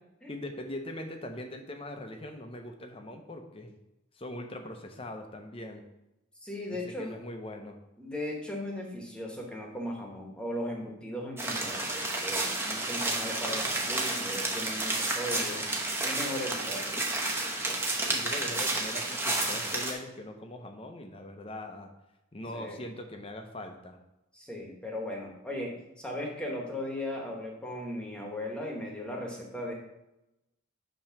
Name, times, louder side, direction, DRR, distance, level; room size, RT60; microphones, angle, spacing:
voice 1, 0.3-3.7 4.1-5.8 6.7-7.8 18.1-21.9 22.3-24.0, left 1 dB, 25° left, 5 dB, 0.7 m, -41 dB
voice 2, 6.4-7.1 8.0-15.7 16.0-17.1 22.5-22.8 24.3-29.7, left 1 dB, 5° left, -1 dB, 1.3 m, -37 dB
sound 1, 11.4-19.9, right 2 dB, 10° right, 0.9 m, -31 dB
8.7 x 3.0 x 5.8 m, 0.93 s
head